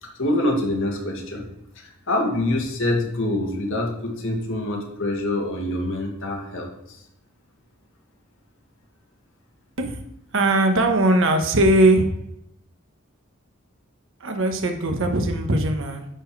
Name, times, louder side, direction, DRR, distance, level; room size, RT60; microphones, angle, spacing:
voice 1, 0.0-1.5 1.8-7.0, left 1 dB, 65° left, 1 dB, 1.9 m, -25 dB
voice 2, 10.3-12.1 14.2-16.1, right 1 dB, 65° right, 4 dB, 1.2 m, -20 dB
10.0 x 4.5 x 4.7 m, 0.81 s
head